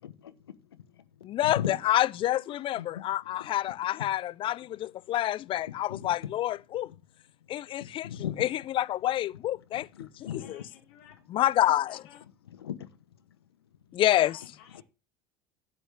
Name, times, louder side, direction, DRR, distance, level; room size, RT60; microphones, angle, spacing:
voice 1, 0.0-1.8 2.5-3.8 4.4-4.5 5.9-6.3 7.4-7.5 7.8-8.5 9.9-10.6 12.4-13.5 14.7-14.8, left 10 dB, 90° left, 1.1 m, -39 dB
voice 2, 1.2-6.9 7.5-10.1 10.3-10.6 11.3-12.0 13.9-14.4, left 13 dB, 45° left, 0.5 m, -28 dB
voice 3, 10.4-12.2 14.2-14.8, left 8 dB, 70° left, 4.7 m, -54 dB
13.0 x 9.2 x 3.4 m
hypercardioid pair, 75°, 13 cm